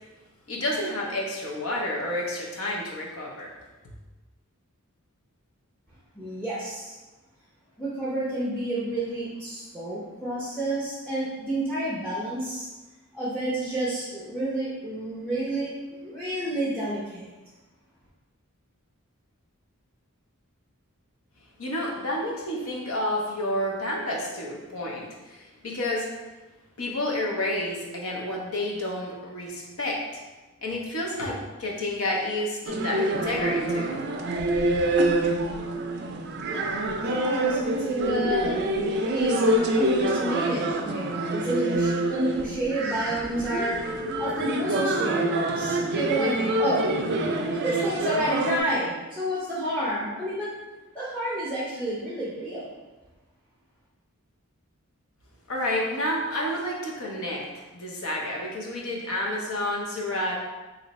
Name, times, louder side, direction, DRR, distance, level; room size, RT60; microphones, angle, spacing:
voice 1, 0.5-3.5 21.6-26.1 26.8-30.2 30.6-33.9 55.5-60.3, left 1 dB, 70° left, -1 dB, 0.8 m, -30 dB
voice 2, 6.1-6.9 7.8-12.7 13.1-17.3 37.0-38.8 39.1-43.8 44.2-46.9 47.5-50.5 50.9-52.7, right 1 dB, 5° left, -8 dB, 0.7 m, -30 dB
sound 1, 32.7-48.6, right 1 dB, 50° right, 0.4 m, -26 dB
3.1 x 2.6 x 4.1 m, 1.2 s
head